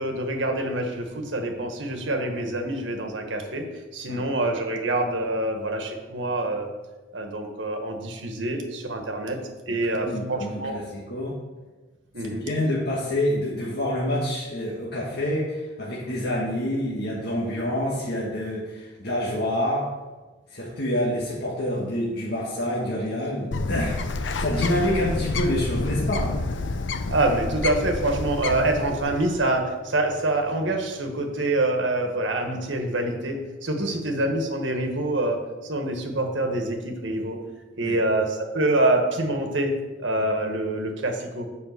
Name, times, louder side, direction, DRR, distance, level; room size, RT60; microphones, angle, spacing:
voice 1, 0.0-3.6 3.9-6.7 7.1-9.4 9.7-10.7 12.1-12.5 27.1-35.4 35.6-37.4 37.8-39.7 40.0-41.5, right 2 dB, 80° right, 3 dB, 1.4 m, -26 dB
voice 2, 9.8-11.3 12.2-19.9 20.5-26.3 33.9-34.0 37.8-38.0, left 1 dB, 60° left, -5 dB, 1.6 m, -27 dB
Bird, 23.5-29.4, left 3 dB, 75° left, 0.6 m, -29 dB
7.4 x 5.1 x 6.8 m, 1.2 s
head